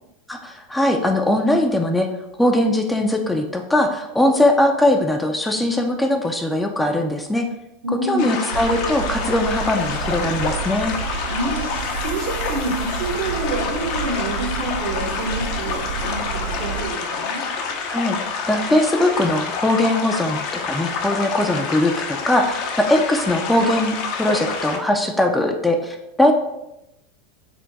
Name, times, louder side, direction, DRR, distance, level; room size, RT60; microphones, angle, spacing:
voice 1, 0.3-2.1 2.4-7.5 8.0-10.9 17.9-18.2 18.5-20.4 20.7-21.9 22.3-26.3, left 1 dB, 5° left, 4 dB, 0.4 m, -20 dB
voice 2, 7.8-8.4 11.3-17.4, right 2 dB, 65° right, 1 dB, 0.9 m, -28 dB
sound 1, 8.2-24.8, left 5 dB, 55° left, 0.6 m, -28 dB
sound 2, 8.5-16.9, right 5 dB, 85° right, 0.4 m, -30 dB
3.5 x 2.1 x 3.9 m, 0.89 s
hypercardioid pair, 110°, 0 cm